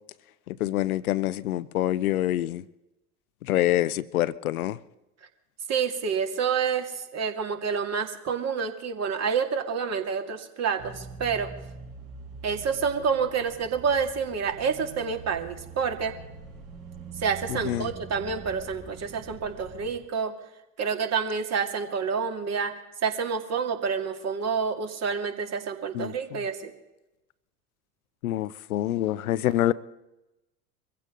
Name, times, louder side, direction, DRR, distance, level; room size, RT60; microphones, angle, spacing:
voice 1, 0.5-2.6 3.5-4.8 17.6-17.9 25.9-26.1 28.2-29.7, left 14 dB, 75° left, 0.7 m, -26 dB
voice 2, 5.7-11.5 12.4-16.1 17.2-20.3 20.8-22.7 23.0-26.7, right 6 dB, 35° right, 2.3 m, -28 dB
sound 1, 10.8-19.9, right 4 dB, 55° right, 4.5 m, -44 dB
23.5 x 15.5 x 3.8 m
hypercardioid pair, 80°, 43 cm